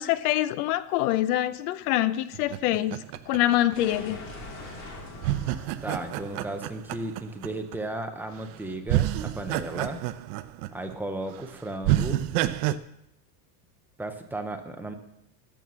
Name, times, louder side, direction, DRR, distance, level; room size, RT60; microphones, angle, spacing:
voice 1, 0.0-3.0 3.3-4.2, left 14 dB, 65° left, 15 dB, 0.7 m, -25 dB
sound 1, 2.3-4.3 5.2-7.8 8.4-8.6 8.9-11.0 11.3-11.4 11.8-12.8, right 14 dB, 65° right, 0.7 m, -28 dB
sound 2, 3.7-8.5, left 2 dB, 35° left, 2.5 m, -44 dB
voice 2, 5.8-10.0 10.7-12.2 14.0-14.9, right 2 dB, 5° right, 5 dB, 0.5 m, -35 dB
12.0 x 7.1 x 6.2 m, 0.83 s
supercardioid pair, 155°, 49 cm